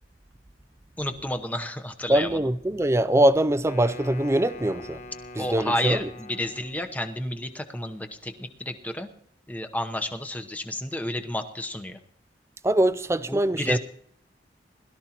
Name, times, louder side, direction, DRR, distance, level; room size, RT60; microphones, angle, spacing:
voice 1, 1.0-2.4 5.4-9.1 9.5-12.0 13.3-13.8, left 1 dB, 10° left, 0.9 m, -31 dB
voice 2, 2.1-5.0 5.4-6.1 12.6-13.8, right 1 dB, 15° right, 0.4 m, -23 dB
Wind instrument woodwind instrument, 3.6-7.1, left 1 dB, 40° left, 1.2 m, -43 dB
21.5 x 13.0 x 3.0 m
head